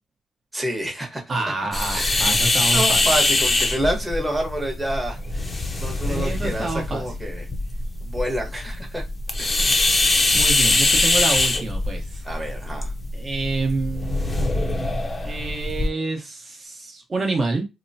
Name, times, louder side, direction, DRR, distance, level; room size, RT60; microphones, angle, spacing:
voice 1, 0.5-1.2 1.9-2.3 2.7-5.5 5.8-7.5 8.0-9.0 9.4-9.7 12.2-12.9, right 1 dB, 15° right, 1.1 m, -28 dB
voice 2, 1.3-3.0 6.1-7.1 10.3-12.2 13.1-14.9 15.2-17.7, right 3 dB, 35° right, 1.0 m, -28 dB
sound 1, 1.7-15.9, left 2 dB, 25° left, 0.6 m, -23 dB
2.9 x 2.1 x 2.7 m
cardioid pair, 90°, 0 cm